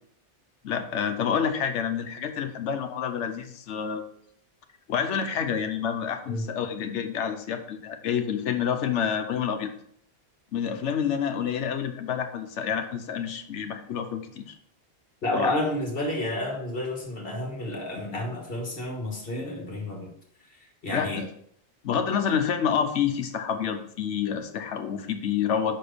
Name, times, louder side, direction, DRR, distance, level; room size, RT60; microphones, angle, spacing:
voice 1, 0.6-4.1 4.9-9.7 10.5-14.5 15.2-15.5 20.9-21.3 21.8-25.8, left 7 dB, 80° left, 7 dB, 1.1 m, -28 dB
voice 2, 15.2-20.1 20.8-21.2, left 1 dB, 55° left, 1 dB, 1.6 m, -30 dB
5.8 x 4.4 x 5.0 m, 0.66 s
omnidirectional pair, 1.2 m